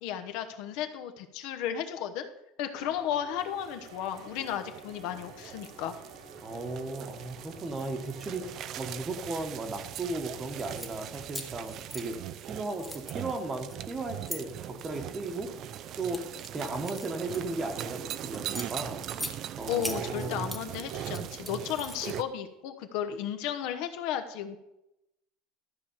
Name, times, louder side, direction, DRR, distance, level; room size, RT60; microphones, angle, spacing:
voice 1, 0.0-2.3 2.6-5.9 19.7-24.6, left 9 dB, 55° left, 8 dB, 1.0 m, -34 dB
sound 1, 2.7-9.0, right 3 dB, 80° right, 2.8 m, -51 dB
sound 2, 3.4-22.2, right 11 dB, 35° right, 0.4 m, -41 dB
voice 2, 6.4-8.4 8.8-12.2 12.4-15.5 16.0-16.2 16.5-19.0 19.6-20.5, right 2 dB, 15° right, 6 dB, 1.1 m, -36 dB
sound 3, 10.6-10.9 11.3-12.5 12.8-14.4 15.1-15.4 15.9-17.9 18.3-19.4 19.8-20.6 21.0-22.2, equal, ahead, 0.8 m, -40 dB
13.0 x 4.9 x 7.2 m, 0.88 s
cardioid pair, 170°, 0 cm